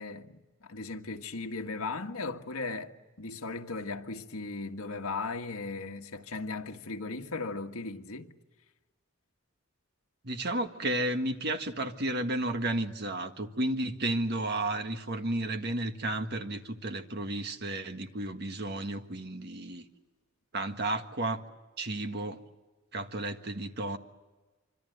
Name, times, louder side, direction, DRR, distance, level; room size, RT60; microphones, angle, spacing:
voice 1, 0.0-2.9 3.2-8.3, left 3 dB, 75° left, 1.7 m, -37 dB
voice 2, 10.2-19.8 20.5-21.4 21.8-22.4 22.9-24.0, right 1 dB, 50° right, 1.6 m, -32 dB
25.5 x 25.5 x 8.0 m
head